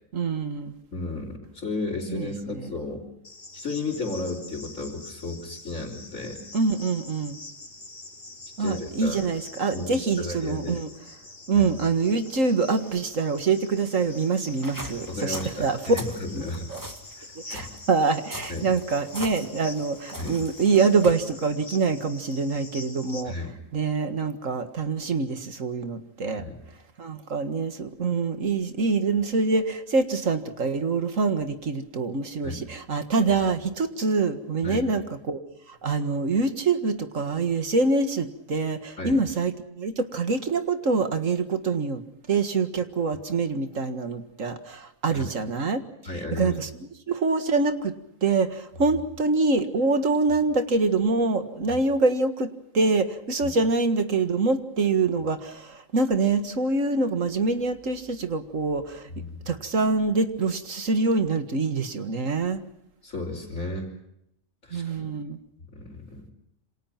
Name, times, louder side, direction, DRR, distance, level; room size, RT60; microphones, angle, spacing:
voice 1, 0.1-0.8 2.1-2.7 6.5-7.4 8.6-10.9 11.5-16.0 16.3-16.4 16.7-16.8 17.5-23.3 23.7-26.4 27.0-35.4 35.7-42.0 42.3-45.8 46.3-46.7 47.1-48.0 48.2-59.1 59.5-62.6 64.7-65.4, right 4 dB, 70° right, 8 dB, 2.2 m, -25 dB
voice 2, 0.9-3.0 3.5-6.4 8.6-9.2 9.7-10.8 11.5-11.7 15.1-16.7 17.2-17.7 18.5-18.7 20.2-20.4 23.2-23.5 26.3-26.6 32.4-32.6 34.6-34.9 39.0-39.2 45.1-45.3 46.0-46.5 51.7-51.8 53.4-53.5 59.1-59.4 63.0-63.9 64.6-65.1 65.7-66.3, left 2 dB, 70° left, -6 dB, 4.4 m, -33 dB
Cricket, 3.2-23.2, left 2 dB, 45° left, 3.3 m, -45 dB
sound 1, 13.9-21.1, right 1 dB, 15° right, 2.0 m, -41 dB
28.0 x 26.0 x 5.9 m, 0.80 s
omnidirectional pair, 1.4 m